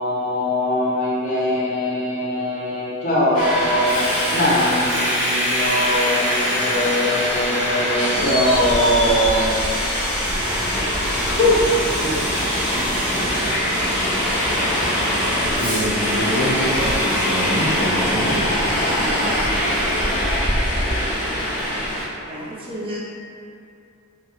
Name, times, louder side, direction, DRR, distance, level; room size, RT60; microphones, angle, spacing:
voice 1, 0.0-4.0 4.3-9.6 11.4-11.6 12.0-12.4, left 1 dB, 35° left, -8 dB, 0.6 m, -21 dB
Subway metro underground, 3.3-22.0, equal, 5° left, 0.8 m, -22 dB
voice 2, 15.5-18.5, equal, 90° left, -4 dB, 0.6 m, -25 dB
voice 3, 22.2-23.0, equal, 25° right, -5 dB, 0.4 m, -32 dB
2.8 x 2.4 x 2.8 m, 2.5 s
head